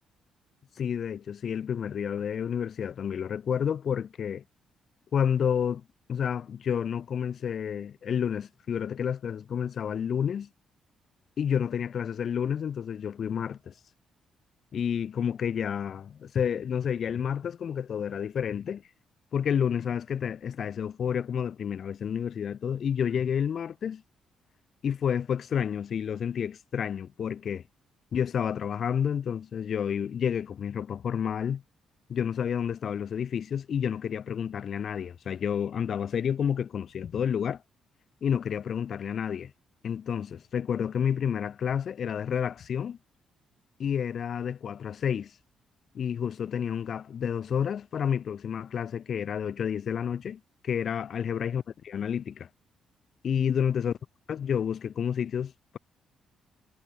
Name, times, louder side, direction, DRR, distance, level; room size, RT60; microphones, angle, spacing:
voice 1, 0.8-4.4 5.1-5.8 6.1-10.5 11.4-13.7 14.7-18.8 19.3-24.0 24.8-27.6 28.1-31.6 32.1-37.6 38.2-39.5 39.8-43.0 43.8-45.3 45.9-52.5 53.2-53.9 54.3-55.8, left 8 dB, 50° left, 3.2 m, -30 dB
cardioid pair, 125°, 0 cm